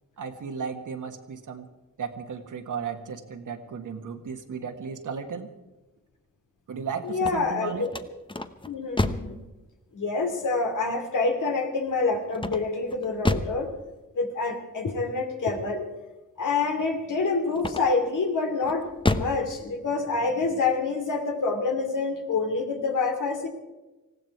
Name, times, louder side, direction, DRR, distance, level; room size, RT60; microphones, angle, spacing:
voice 1, 0.2-1.7 2.0-5.5 6.7-7.9, right 6 dB, 70° right, 6 dB, 1.7 m, -35 dB
voice 2, 7.0-7.9 8.7-9.4 9.9-13.7 14.1-15.9 16.4-23.5, left 4 dB, 70° left, 3 dB, 2.6 m, -27 dB
sound 1, 7.1-9.4 12.3-13.6 17.5-18.1 18.6-19.4, left 2 dB, 15° left, 0.9 m, -29 dB
19.5 x 15.5 x 4.7 m, 1.1 s
cardioid pair, 75°, 32 cm